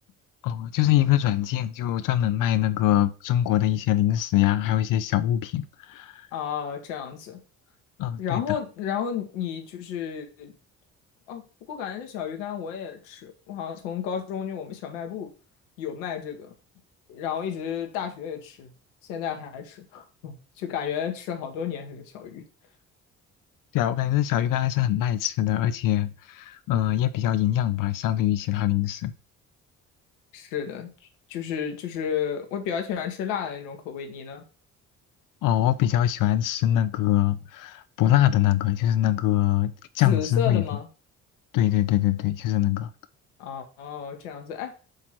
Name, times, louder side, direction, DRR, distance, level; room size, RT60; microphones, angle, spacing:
voice 1, 0.4-6.2 8.0-8.6 23.7-29.1 35.4-40.6 41.5-42.9, left 12 dB, 60° left, 0.5 m, -23 dB
voice 2, 6.3-7.4 8.2-10.5 11.3-15.3 15.8-16.5 17.1-18.7 19.1-22.4 30.3-34.4 40.0-40.9 43.4-44.7, left 8 dB, 80° left, 1.1 m, -32 dB
7.8 x 2.9 x 5.9 m
hypercardioid pair, 50°, 38 cm